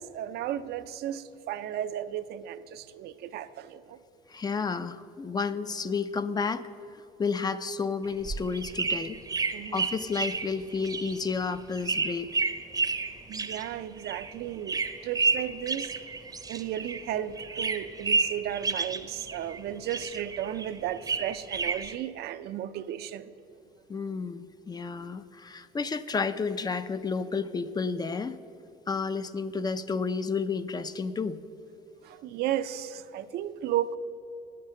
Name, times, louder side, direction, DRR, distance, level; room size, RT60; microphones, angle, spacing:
voice 1, 0.0-4.0 9.5-9.9 13.3-15.9 16.5-23.3 32.0-34.0, right 11 dB, 70° right, 12 dB, 0.5 m, -34 dB
voice 2, 4.3-6.7 7.2-9.2 9.7-12.3 23.9-28.4 28.9-31.4, left 5 dB, 25° left, 13 dB, 0.4 m, -31 dB
sound 1, 8.0-17.1 17.3-19.6 19.9-21.9, right 4 dB, 20° right, 0.6 m, -31 dB
9.3 x 6.6 x 7.4 m, 2.8 s
cardioid pair, 110°, 17 cm